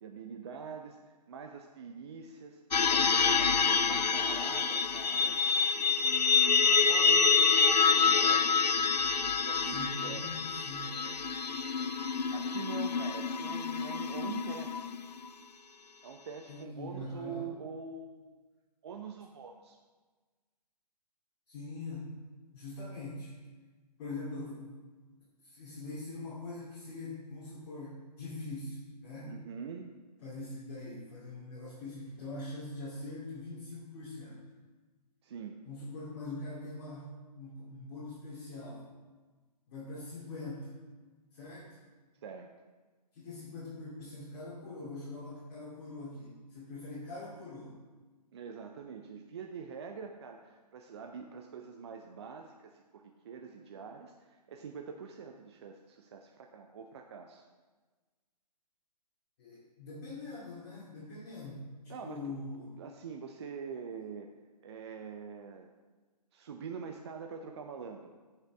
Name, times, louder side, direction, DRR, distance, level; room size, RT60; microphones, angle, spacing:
voice 1, 0.0-5.4 6.0-8.5 9.4-10.4 10.8-11.9 12.3-14.9 16.0-18.4 18.8-19.8 29.2-29.9 35.2-35.6 42.2-42.5 48.3-57.4 61.9-62.3 62.8-64.3 64.6-65.7 66.3-68.1, right 6 dB, 40° right, 3 dB, 0.6 m, -45 dB
sound 1, 2.7-15.2, left 5 dB, 80° left, 0.5 m, -27 dB
voice 2, 9.7-11.0 16.5-17.5 21.5-22.1 22.5-23.3 24.0-24.8 25.4-29.3 30.2-34.4 35.6-38.9 39.7-40.7 41.3-41.8 43.1-47.8 59.4-62.8, left 2 dB, 35° left, -8 dB, 2.4 m, -43 dB
15.0 x 5.7 x 3.4 m, 1.3 s
figure-of-eight pair, 140°, 21 cm